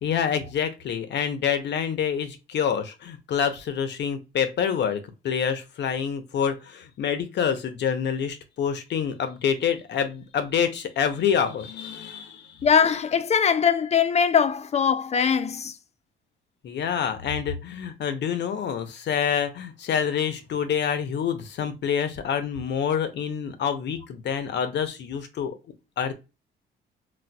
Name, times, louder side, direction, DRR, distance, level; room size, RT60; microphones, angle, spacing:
voice 1, 0.0-12.6 16.6-25.5 26.0-26.1, left 7 dB, 60° left, 0.7 m, -27 dB
voice 2, 12.6-15.7, left 7 dB, 35° left, 0.4 m, -21 dB
4.1 x 2.2 x 2.2 m
cardioid pair, 90°, 20 cm